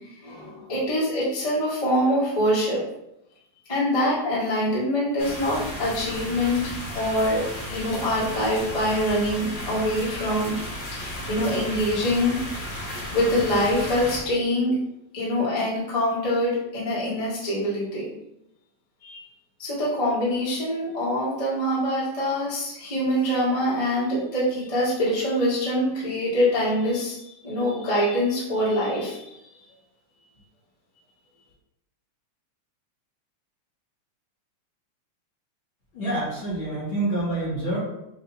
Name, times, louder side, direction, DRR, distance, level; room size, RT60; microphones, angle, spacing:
voice 1, 0.2-2.8 3.7-7.4 7.7-10.6 10.8-12.4 13.1-14.8 15.1-18.1 19.0-19.2 19.6-27.2 27.4-29.4, equal, 20° left, -8 dB, 0.8 m, -24 dB
sound 1, 5.2-14.2, left 1 dB, 80° left, 2.8 m, -34 dB
voice 2, 35.9-37.8, right 2 dB, 55° left, -8 dB, 1.6 m, -27 dB
7.2 x 2.6 x 2.7 m, 0.85 s
omnidirectional pair, 3.4 m